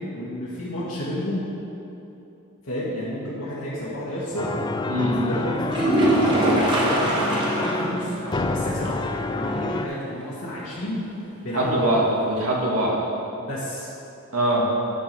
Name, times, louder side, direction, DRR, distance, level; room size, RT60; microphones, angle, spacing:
voice 1, 0.0-1.5 2.6-4.5 5.2-6.1 7.3-9.0 9.3-11.0 11.4-12.0 13.4-13.9, left 1 dB, 60° left, -9 dB, 1.7 m, -31 dB
sound 1, 4.4-9.9, left 2 dB, 20° left, 0.3 m, -28 dB
voice 2, 4.9-5.2 11.5-13.0 14.3-14.7, right 1 dB, 85° right, -3 dB, 2.0 m, -22 dB
sound 2, 5.7-7.9 8.3-8.4 8.8-8.9 12.7-12.8, right 1 dB, 20° right, 1.3 m, -21 dB
10.5 x 4.8 x 6.8 m, 2.9 s
head